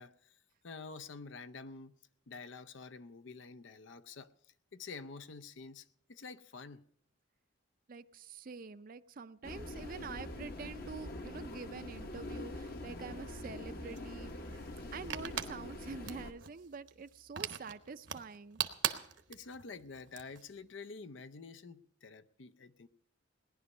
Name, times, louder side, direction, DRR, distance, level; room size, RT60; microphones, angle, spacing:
voice 1, 0.0-2.0 2.3-6.8 19.3-22.9, left 4 dB, 75° left, 0.6 m, -49 dB
voice 2, 7.9-14.5 14.9-18.6, right 4 dB, 45° right, 0.5 m, -46 dB
sound 1, 9.4-16.3, left 1 dB, 50° left, 1.1 m, -44 dB
sound 2, 13.0-20.4, right 9 dB, 65° right, 1.0 m, -41 dB
18.0 x 11.0 x 5.4 m
head